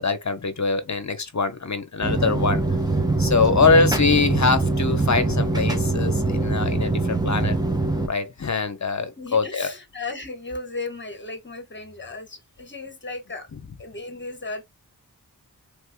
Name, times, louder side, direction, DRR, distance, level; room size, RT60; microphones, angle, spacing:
voice 1, 0.0-2.6 3.2-7.6 8.1-9.7 13.5-13.6, left 4 dB, 50° left, 0.8 m, -23 dB
pendolino train - int - start - pendolino-juna sisa- lahto, 2.0-8.1, right 3 dB, 10° right, 0.9 m, -23 dB
voice 2, 9.2-13.5 13.8-14.6, left 3 dB, 30° left, 1.1 m, -35 dB
3.3 x 3.2 x 2.2 m
wide cardioid pair, 40°, 38 cm